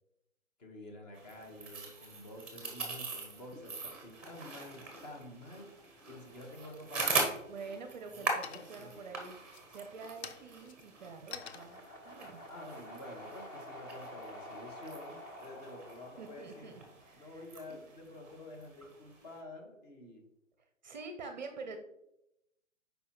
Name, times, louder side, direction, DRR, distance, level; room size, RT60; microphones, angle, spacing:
voice 1, 0.6-7.3 8.1-9.2 12.5-16.7 17.1-20.2, left 1 dB, 30° left, 1 dB, 1.4 m, -49 dB
sound 1, 1.1-19.4, right 3 dB, 5° right, 0.9 m, -42 dB
voice 2, 7.5-9.4 9.7-11.8 12.0-12.4 16.2-17.4 20.8-21.8, right 4 dB, 35° right, 6 dB, 0.6 m, -46 dB
sound 2, 7.8-8.2 8.4-9.0 9.4-13.9, left 7 dB, 55° left, 0.6 m, -50 dB
sound 3, 11.3-17.5, equal, 15° left, 0.6 m, -49 dB
6.9 x 5.1 x 3.0 m, 0.84 s
hypercardioid pair, 140°, 39 cm